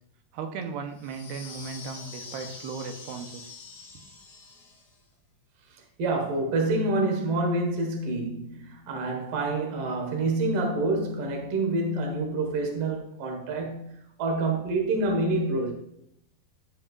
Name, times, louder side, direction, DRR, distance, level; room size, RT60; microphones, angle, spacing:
voice 1, 0.3-3.6, right 5 dB, 90° right, 2.8 m, -36 dB
sound 1, 1.0-5.0, left 4 dB, 50° left, 0.9 m, -45 dB
voice 2, 6.0-13.9 14.2-15.7, right 2 dB, 55° right, 1.9 m, -27 dB
12.5 x 5.5 x 2.4 m
omnidirectional pair, 4.5 m